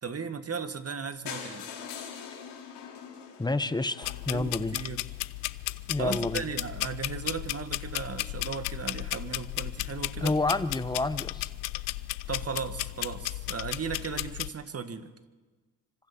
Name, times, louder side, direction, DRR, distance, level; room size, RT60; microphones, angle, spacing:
voice 1, 0.0-1.7 4.3-5.0 6.0-10.3 12.3-15.1, right 5 dB, 35° right, 9 dB, 1.8 m, -36 dB
sound 1, 1.3-5.1 5.8-5.9 6.1-6.2 6.5-6.6 6.8-6.9, left 7 dB, 70° left, 4.0 m, -43 dB
voice 2, 3.4-4.8 5.9-6.4 10.2-11.5, left 2 dB, 10° left, 13 dB, 1.0 m, -29 dB
sound 2, 4.0-14.5, left 19 dB, 85° left, 0.7 m, -35 dB
26.5 x 25.5 x 4.4 m, 1.3 s
supercardioid pair, 70°, 43 cm